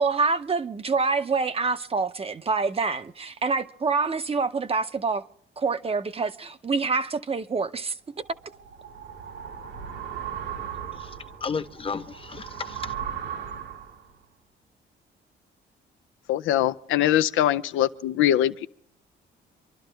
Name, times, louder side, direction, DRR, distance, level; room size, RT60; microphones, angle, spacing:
voice 1, 0.0-5.2 5.6-7.9, right 4 dB, 30° right, 0.6 m, -26 dB
sound 1, 8.3-14.1, right 8 dB, 75° right, 2.2 m, -37 dB
voice 2, 10.9-12.9, left 5 dB, 25° left, 0.9 m, -34 dB
voice 3, 16.3-18.7, left 12 dB, 85° left, 0.5 m, -22 dB
26.5 x 11.5 x 3.3 m
cardioid pair, 90°, 20 cm